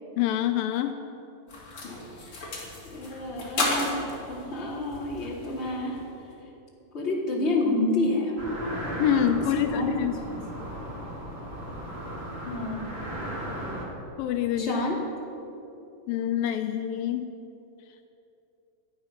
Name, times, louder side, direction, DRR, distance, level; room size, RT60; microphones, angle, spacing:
voice 1, 0.2-1.0 9.0-10.2 14.2-14.8 16.1-17.2, left 10 dB, 80° left, 7 dB, 2.5 m, -26 dB
sound 1, 1.5-6.2, left 2 dB, 40° left, 3.5 m, -34 dB
voice 2, 2.8-6.0 6.9-8.3 9.5-9.9 10.3-10.4 12.4-12.9 14.6-15.0, left 2 dB, 20° left, -3 dB, 2.5 m, -29 dB
sound 2, 8.4-13.9, right 1 dB, 20° right, 2.4 m, -36 dB
18.0 x 12.5 x 5.9 m, 2.9 s
omnidirectional pair, 4.0 m